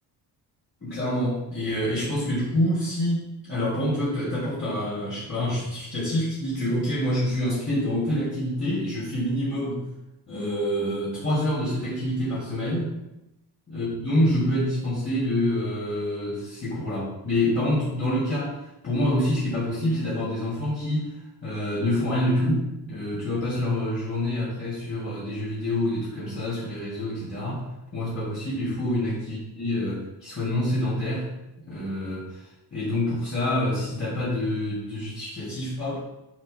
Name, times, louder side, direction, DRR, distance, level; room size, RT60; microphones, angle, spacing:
voice 1, 0.8-9.9 10.3-12.9 13.7-18.6 18.8-21.1 21.4-31.3 31.7-36.0, left 1 dB, 30° left, -10 dB, 2.7 m, -27 dB
10.0 x 6.0 x 2.3 m, 0.90 s
wide cardioid pair, 160°, 41 cm